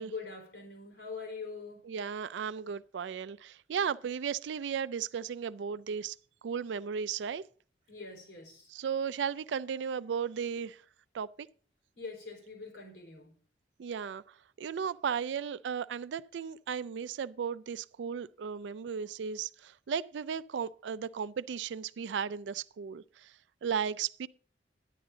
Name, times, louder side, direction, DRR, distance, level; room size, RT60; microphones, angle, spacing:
voice 1, 0.0-1.8 7.9-8.7 12.0-13.4, left 4 dB, 75° left, 4.4 m, -43 dB
voice 2, 1.9-6.2 6.4-7.4 8.7-10.8 11.1-11.5 13.8-14.2 14.6-23.3 23.6-24.3, right 7 dB, 85° right, 0.4 m, -35 dB
10.5 x 10.0 x 3.9 m
head